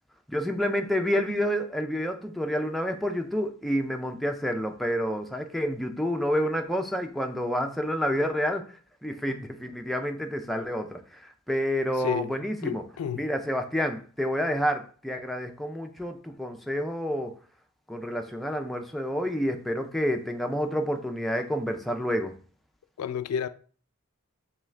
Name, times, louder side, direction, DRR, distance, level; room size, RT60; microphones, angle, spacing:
voice 1, 0.3-8.6 9.0-12.8 13.2-17.3 17.9-22.3, equal, ahead, 0.3 m, -29 dB
voice 2, 12.0-12.3 12.6-13.3 23.0-23.5, left 8 dB, 85° left, 0.3 m, -31 dB
3.6 x 3.0 x 3.2 m
head